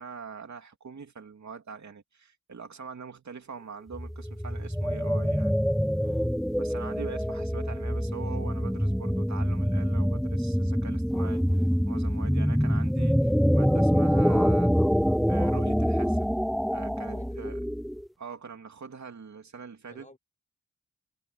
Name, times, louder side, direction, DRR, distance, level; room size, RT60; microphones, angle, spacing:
voice 1, 0.0-5.5 6.6-14.7 15.2-16.3 16.7-17.6 18.2-20.1, right 5 dB, 70° right, 2.9 m, -43 dB
sound 1, 3.9-18.1, equal, ahead, 0.4 m, -25 dB
voice 2, 6.0-6.4 12.5-12.7 17.1-17.5 19.9-20.2, left 2 dB, 25° left, 4.7 m, -51 dB
cardioid pair, 70°, 30 cm